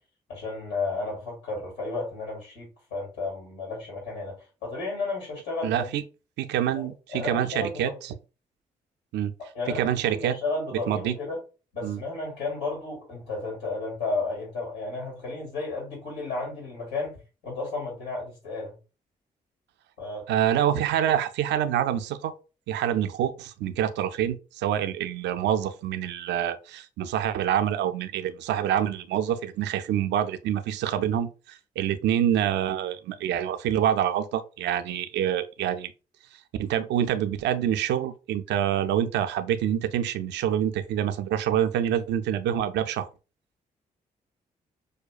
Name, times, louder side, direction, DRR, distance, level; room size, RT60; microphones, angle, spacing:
voice 1, 0.3-5.9 6.7-7.9 9.5-11.4 11.7-18.7 20.0-20.3, left 3 dB, 70° left, 2.2 m, -33 dB
voice 2, 5.6-6.0 6.4-8.1 9.1-9.3 9.7-10.4 10.9-11.1 11.8-12.0 20.3-22.3 22.7-35.9 36.6-43.1, right 10 dB, 70° right, 0.5 m, -26 dB
6.3 x 2.2 x 2.4 m
hypercardioid pair, 40°, 19 cm